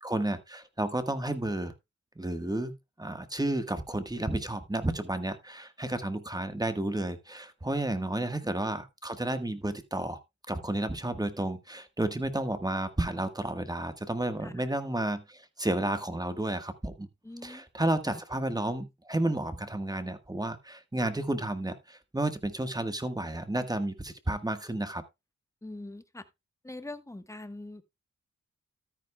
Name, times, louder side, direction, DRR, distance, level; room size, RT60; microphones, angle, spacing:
voice 1, 0.0-1.7 2.2-10.2 10.5-17.1 17.4-25.0, right 1 dB, 15° right, 1.4 m, -32 dB
voice 2, 14.4-14.7 17.2-17.6 18.1-18.2 25.6-26.3 26.6-27.8, left 2 dB, 10° left, 1.2 m, -43 dB
13.0 x 9.7 x 2.2 m
cardioid pair, 75°, 30 cm